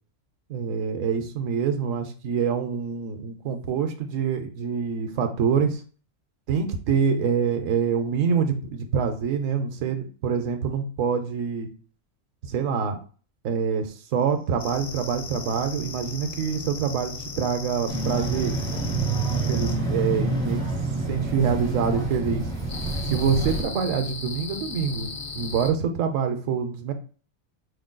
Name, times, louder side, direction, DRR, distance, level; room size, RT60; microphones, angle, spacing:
voice 1, 0.5-5.8 6.5-11.7 12.4-13.0 13.4-18.5 19.3-20.6 21.1-22.5 23.0-26.9, right 6 dB, 75° right, 6 dB, 1.0 m, -26 dB
sound 1, 14.6-19.8 22.7-25.7, left 4 dB, 40° left, 0.4 m, -37 dB
sound 2, 17.9-23.6, right 3 dB, 20° right, 1.3 m, -27 dB
5.2 x 3.7 x 2.2 m, 0.39 s
omnidirectional pair, 1.4 m